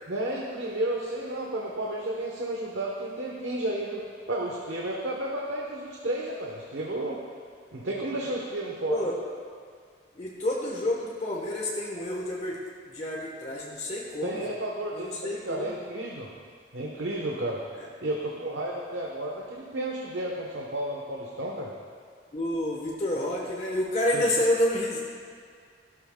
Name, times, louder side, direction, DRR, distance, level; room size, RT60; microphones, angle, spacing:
voice 1, 0.1-4.0 4.3-7.2 7.7-9.1 14.2-16.3 16.7-17.6 18.0-21.7 24.1-24.2, right 1 dB, 85° right, -2 dB, 1.2 m, -32 dB
voice 2, 7.9-8.3 8.9-9.2 10.1-12.6 12.9-14.5 14.9-15.8 17.7-17.9 22.3-25.0, left 1 dB, 35° left, -3 dB, 1.3 m, -29 dB
16.5 x 12.5 x 2.4 m, 2.1 s
head